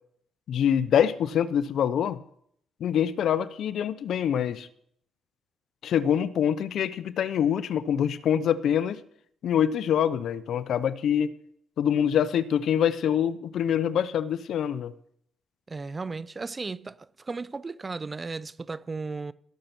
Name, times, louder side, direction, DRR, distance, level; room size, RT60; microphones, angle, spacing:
voice 1, 0.5-2.2 2.8-4.7 5.8-9.0 9.4-11.3 11.8-14.9, left 9 dB, 70° left, 0.7 m, -25 dB
voice 2, 15.7-19.3, right 4 dB, 30° right, 0.5 m, -35 dB
17.0 x 6.7 x 6.1 m
cardioid pair, 90°, 0 cm